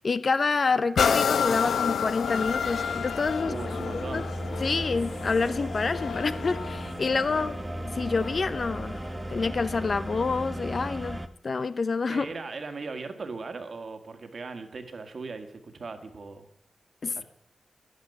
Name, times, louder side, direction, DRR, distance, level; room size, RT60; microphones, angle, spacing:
voice 1, 0.0-3.6 3.9-4.2 4.6-7.5 7.9-12.3 17.0-17.2, left 4 dB, 40° left, 14 dB, 0.6 m, -28 dB
sound 1, 1.0-8.6 9.2-9.3, left 7 dB, 80° left, 0.6 m, -30 dB
sound 2, 2.2-11.3, right 1 dB, 10° right, 0.9 m, -36 dB
voice 2, 3.5-4.3 7.3-7.5 12.1-16.5 17.2-17.3, right 4 dB, 45° right, 7 dB, 1.7 m, -38 dB
12.0 x 10.5 x 9.6 m, 0.79 s
wide cardioid pair, 150°, 0 cm